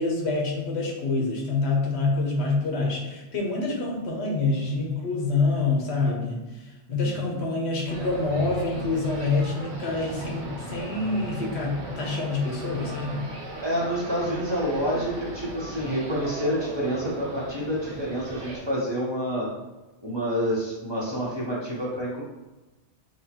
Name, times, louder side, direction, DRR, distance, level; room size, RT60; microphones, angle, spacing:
voice 1, 0.0-13.3, left 3 dB, 70° left, 0 dB, 1.1 m, -26 dB
voice 2, 7.0-7.4 13.6-19.5 20.0-22.2, equal, 25° right, -7 dB, 0.9 m, -28 dB
sound 1, 7.9-18.6, right 2 dB, 70° right, 1.1 m, -38 dB
6.2 x 2.3 x 2.9 m, 1.1 s
omnidirectional pair, 1.2 m